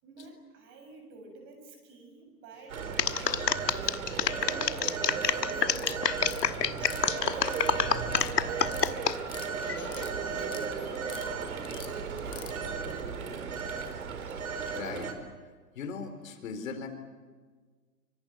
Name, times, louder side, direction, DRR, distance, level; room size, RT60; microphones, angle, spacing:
voice 1, 0.0-2.8 3.1-8.9 9.6-12.7, right 3 dB, 25° right, 4 dB, 7.0 m, -49 dB
Telephone, 2.7-15.1, right 5 dB, 55° right, 4.5 m, -35 dB
sound 1, 3.0-9.2 9.6-10.0, left 8 dB, 85° left, 1.3 m, -27 dB
sound 2, 5.6-6.5 6.8-7.7 8.0-8.3 8.6-9.5 9.8-10.7 10.9-11.3 11.6-12.5, left 13 dB, 10° left, 0.7 m, -45 dB
voice 2, 14.3-15.2 15.8-16.9, left 5 dB, 55° left, 7 dB, 4.0 m, -39 dB
25.5 x 24.5 x 8.8 m, 1.5 s
hypercardioid pair, 140°, 48 cm